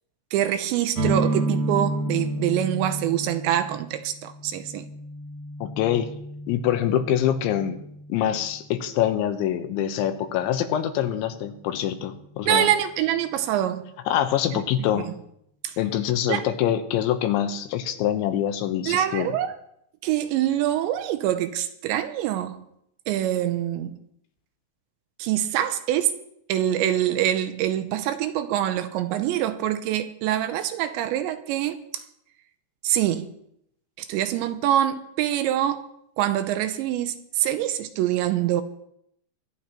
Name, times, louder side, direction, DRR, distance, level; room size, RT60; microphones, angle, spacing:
voice 1, 0.3-4.9 12.5-13.9 14.5-15.0 15.6-15.8 16.3-16.4 18.9-19.6 20.0-22.6 23.1-24.0 25.2-26.1 26.5-32.0 32.8-33.3 34.0-35.8 36.2-38.6, right 11 dB, 80° right, 2.9 m, -25 dB
sound 1, 0.9-8.6, right 1 dB, 50° right, 2.8 m, -31 dB
voice 2, 5.6-6.1 6.5-7.8 8.1-12.7 14.1-15.1 15.8-19.3, left 10 dB, 80° left, 3.3 m, -25 dB
23.5 x 12.0 x 3.0 m
omnidirectional pair, 5.4 m